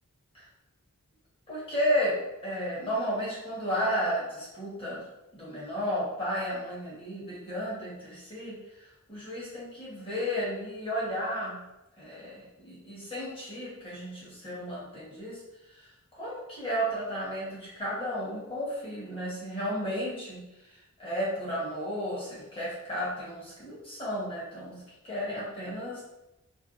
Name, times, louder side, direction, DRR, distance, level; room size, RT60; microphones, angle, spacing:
voice 1, 1.5-5.0 5.3-11.6 12.0-15.4 15.7-20.4 21.0-26.0, equal, 25° left, -7 dB, 0.9 m, -33 dB
2.5 x 2.2 x 2.4 m, 0.93 s
head